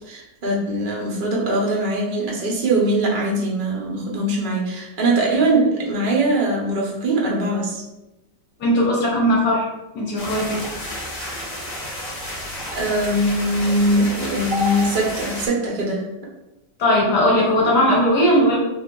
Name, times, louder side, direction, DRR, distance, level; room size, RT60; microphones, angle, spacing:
voice 1, 0.1-7.8 12.7-16.0, right 1 dB, 40° right, -3 dB, 0.7 m, -21 dB
voice 2, 8.6-9.6 9.9-10.6 16.8-18.6, equal, 65° left, -3 dB, 1.3 m, -18 dB
sound 1, 10.2-15.5, equal, 30° left, 0.7 m, -31 dB
2.9 x 2.7 x 3.7 m, 0.98 s
omnidirectional pair, 1.9 m